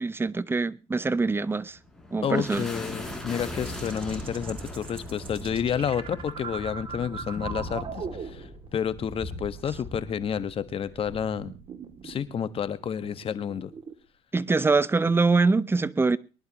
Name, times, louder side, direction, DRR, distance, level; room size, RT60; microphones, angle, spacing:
voice 1, 0.0-1.8 2.1-2.7 14.3-16.2, right 3 dB, 15° right, 0.9 m, -24 dB
sound 1, 1.7-12.3, left 1 dB, ahead, 7.7 m, -40 dB
voice 2, 2.2-11.5 12.0-13.7, left 8 dB, 40° left, 1.5 m, -30 dB
sound 2, 3.6-8.8 9.0-10.3 11.0-13.9, right 6 dB, 40° right, 2.7 m, -40 dB
24.0 x 11.0 x 3.0 m
supercardioid pair, 100°, 14 cm